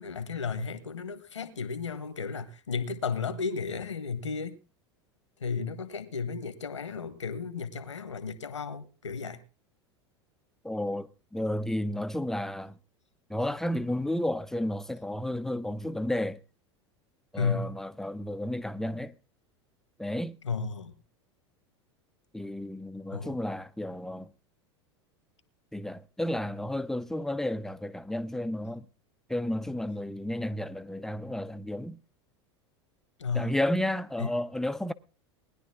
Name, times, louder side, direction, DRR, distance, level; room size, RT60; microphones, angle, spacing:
voice 1, 0.0-4.6 5.4-9.4 17.4-17.8 20.4-20.9 23.1-23.4 33.2-33.5 34.2-34.3, left 5 dB, 80° left, 1.4 m, -33 dB
voice 2, 10.6-12.8 13.3-16.4 17.3-19.1 20.0-20.4 22.3-24.3 25.7-28.8 29.3-32.0 33.3-34.9, left 1 dB, 5° left, 0.6 m, -32 dB
19.5 x 10.5 x 3.7 m
figure-of-eight pair, 85°, 15 cm